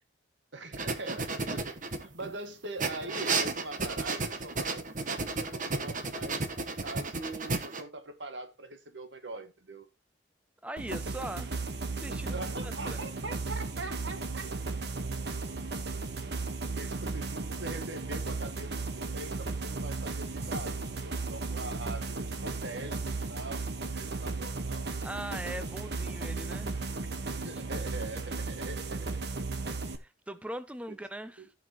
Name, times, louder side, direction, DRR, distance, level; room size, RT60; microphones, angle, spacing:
voice 1, 0.5-4.9 5.2-9.9 12.3-14.8 16.6-23.6 23.9-24.9 26.9-27.0 27.4-29.8 31.4-31.5, right 2 dB, 80° right, 1.7 m, -43 dB
sound 1, 0.7-2.3 2.8-7.8, right 3 dB, 45° right, 1.3 m, -33 dB
voice 2, 10.6-11.5 11.9-13.1 16.8-16.9 25.0-26.8 27.3-27.5 29.6-29.7 30.3-31.5, right 1 dB, 5° right, 0.6 m, -41 dB
sound 2, 10.8-30.0, right 3 dB, 65° right, 1.4 m, -35 dB
15.5 x 5.9 x 3.1 m
head